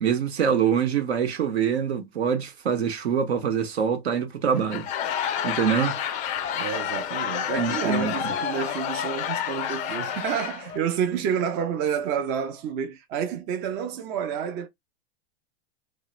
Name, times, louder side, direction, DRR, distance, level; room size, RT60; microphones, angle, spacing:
voice 1, 0.0-4.9 5.4-6.0 7.6-8.1, right 7 dB, 75° right, 0.9 m, -24 dB
Laughter / Crowd, 4.5-10.8, left 9 dB, 25° left, 0.4 m, -29 dB
voice 2, 6.5-14.7, right 8 dB, 35° right, 0.5 m, -29 dB
2.9 x 2.1 x 2.4 m
hypercardioid pair, 110°, 32 cm